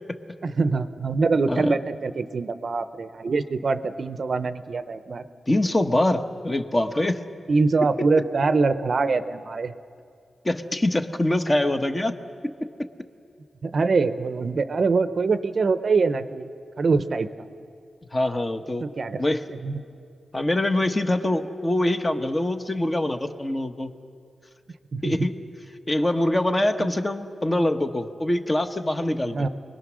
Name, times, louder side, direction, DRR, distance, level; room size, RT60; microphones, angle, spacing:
voice 1, 0.4-5.2 7.5-9.7 13.6-16.5 16.8-17.3 18.8-19.2 19.5-19.8 24.9-25.2 26.8-26.9 29.3-29.5, right 4 dB, 50° right, 11 dB, 0.8 m, -24 dB
voice 2, 5.5-7.2 10.4-12.1 12.4-12.9 18.1-18.9 19.2-19.4 20.3-23.9 25.0-25.3 25.9-29.4, left 1 dB, 20° left, 6 dB, 1.1 m, -24 dB
29.0 x 21.0 x 6.3 m, 2.4 s
wide cardioid pair, 115°, 0 cm